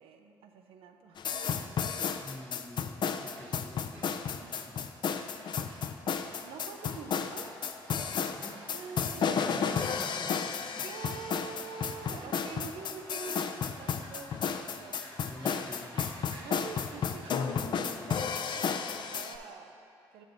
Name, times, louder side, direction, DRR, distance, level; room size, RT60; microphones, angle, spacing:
voice 1, 0.0-2.3 4.3-4.5 6.4-7.5 8.7-9.6 10.8-15.0 16.4-20.2, right 6 dB, 85° right, 5 dB, 0.5 m, -46 dB
sound 1, 1.2-19.4, left 6 dB, 55° left, 0.4 m, -32 dB
voice 2, 2.2-4.9 8.0-8.6 9.3-10.9 15.3-16.6, left 1 dB, 10° left, 1 dB, 0.8 m, -48 dB
sound 2, 3.3-17.5, right 2 dB, 70° right, 0.9 m, -54 dB
sound 3, 6.2-19.1, left 2 dB, 25° left, 1.1 m, -55 dB
6.9 x 5.1 x 4.0 m, 2.5 s
cardioid pair, 70°, 9 cm